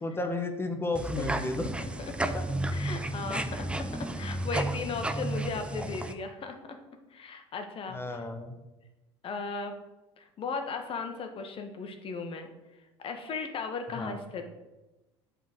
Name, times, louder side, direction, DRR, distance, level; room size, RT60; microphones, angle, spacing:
voice 1, 0.0-1.7 2.3-2.4 7.9-8.5 13.9-14.2, left 2 dB, 15° left, 6 dB, 1.2 m, -32 dB
sound 1, 0.9-6.1, right 1 dB, 10° right, 0.6 m, -32 dB
voice 2, 2.0-2.4 2.7-6.8 7.1-8.2 9.2-9.8 10.2-12.5 13.0-14.4, left 4 dB, 40° left, 6 dB, 1.1 m, -37 dB
7.1 x 3.9 x 6.5 m, 1.1 s
hypercardioid pair, 70°, 14 cm